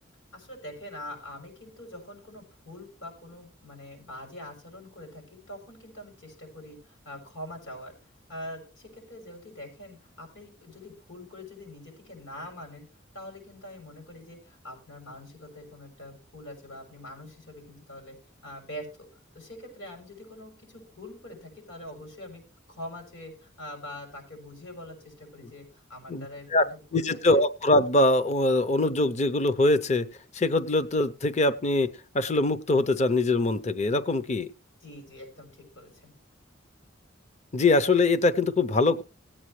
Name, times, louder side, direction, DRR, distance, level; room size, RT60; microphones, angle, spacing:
voice 1, 0.3-7.9 8.3-12.8 13.1-18.2 18.4-19.1 19.3-22.4 22.7-27.4 34.8-36.1, left 1 dB, 80° left, 3 dB, 6.1 m, -44 dB
voice 2, 26.9-30.0 30.3-31.9 32.1-34.5 37.5-39.0, left 2 dB, 35° left, 13 dB, 0.6 m, -23 dB
18.0 x 8.7 x 3.2 m, 0.32 s
head